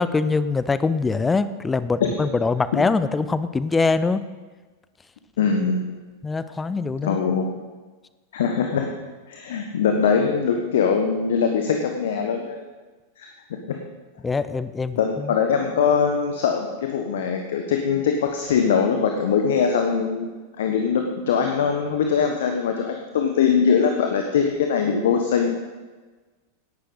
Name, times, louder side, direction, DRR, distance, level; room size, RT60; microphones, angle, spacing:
voice 1, 0.0-4.2 6.2-7.2 14.2-15.0, left 4 dB, 15° left, 14 dB, 0.6 m, -23 dB
voice 2, 5.4-5.8 7.0-7.4 8.3-8.9 9.3-12.6 13.2-13.3 13.7-13.8 14.9-20.3 20.6-25.6, left 6 dB, 60° left, 4 dB, 1.3 m, -22 dB
17.5 x 11.5 x 4.0 m, 1.3 s
figure-of-eight pair, 90°, 0 cm